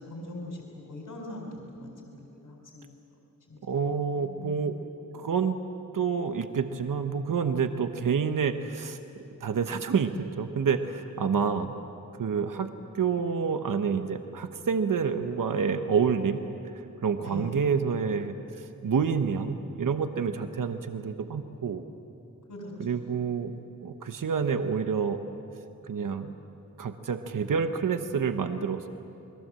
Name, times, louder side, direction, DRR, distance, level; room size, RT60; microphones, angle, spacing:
voice 1, 0.0-2.8 3.5-3.6 4.1-4.9 17.2-17.5 22.5-23.3, left 1 dB, 70° left, 0 dB, 4.4 m, -42 dB
voice 2, 3.6-4.8 5.1-5.6 5.9-11.7 12.2-16.4 16.7-21.8 22.8-23.6 23.8-25.2 25.8-26.3 26.8-28.9, right 6 dB, 70° right, 8 dB, 1.0 m, -28 dB
28.5 x 21.5 x 7.6 m, 2.9 s
wide cardioid pair, 150°, 33 cm